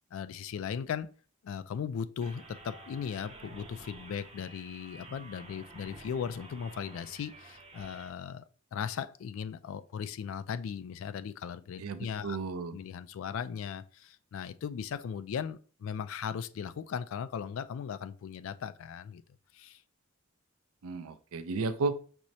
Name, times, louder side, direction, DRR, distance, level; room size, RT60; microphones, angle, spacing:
voice 1, 0.1-1.1 1.4-8.4 8.7-12.4 12.7-19.2 19.5-19.8, left 7 dB, 70° left, 0.3 m, -38 dB
sound 1, 2.2-8.1, right 2 dB, 30° right, 0.6 m, -51 dB
voice 2, 11.8-12.8 20.8-21.9, right 4 dB, 90° right, 0.4 m, -33 dB
6.1 x 2.0 x 2.7 m
head